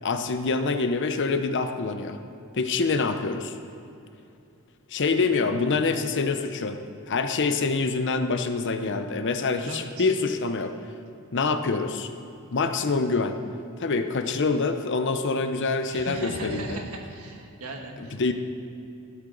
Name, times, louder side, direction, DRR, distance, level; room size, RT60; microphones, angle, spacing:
voice 1, 0.0-2.2 2.5-3.6 4.9-10.7 11.3-12.1 12.5-13.4 13.8-16.8 18.0-18.3, left 4 dB, 55° left, 8 dB, 0.7 m, -26 dB
voice 2, 9.7-10.1 15.9-18.2, right 2 dB, 85° right, 2 dB, 1.5 m, -38 dB
13.0 x 9.6 x 3.9 m, 2.7 s
head